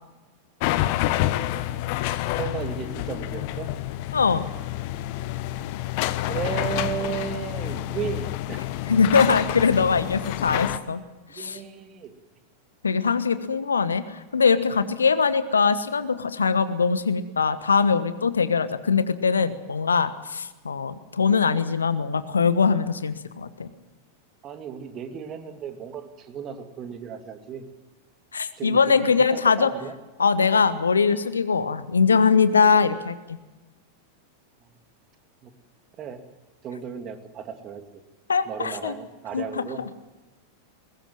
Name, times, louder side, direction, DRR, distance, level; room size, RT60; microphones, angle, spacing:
sound 1, 0.6-10.8, left 15 dB, 45° left, 1.1 m, -28 dB
voice 1, 2.4-3.7 6.3-8.7 11.3-12.1 24.4-27.6 28.6-29.9 35.4-35.5 36.0-36.2 36.6-37.8 38.5-39.8, right 7 dB, 30° right, 7 dB, 2.5 m, -34 dB
voice 2, 4.1-4.5 8.9-11.0 11.3-11.6 12.8-23.7 28.3-29.7 30.2-33.1 38.3-38.9 39.3-39.9, left 5 dB, 75° left, 13 dB, 1.3 m, -22 dB
22.0 x 20.0 x 7.6 m, 1.2 s
figure-of-eight pair, 90°, 0 cm